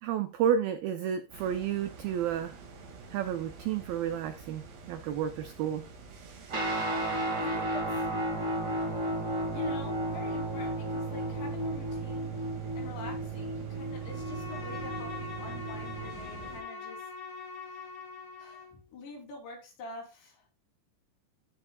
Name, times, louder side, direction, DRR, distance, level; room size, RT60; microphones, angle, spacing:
voice 1, 0.0-2.6 3.1-5.8, right 9 dB, 90° right, 9 dB, 2.0 m, -31 dB
sound 1, 1.3-16.6, right 4 dB, 65° right, 4.1 m, -48 dB
Guitar, 6.5-16.1, right 1 dB, 30° right, 2.3 m, -33 dB
voice 2, 7.4-8.1 9.4-17.9 18.4-20.5, left 3 dB, 75° left, 0 dB, 5.5 m, -46 dB
Bowed string instrument, 14.0-18.8, left 4 dB, 50° left, 4.4 m, -43 dB
14.5 x 6.8 x 2.3 m, 0.30 s
omnidirectional pair, 5.2 m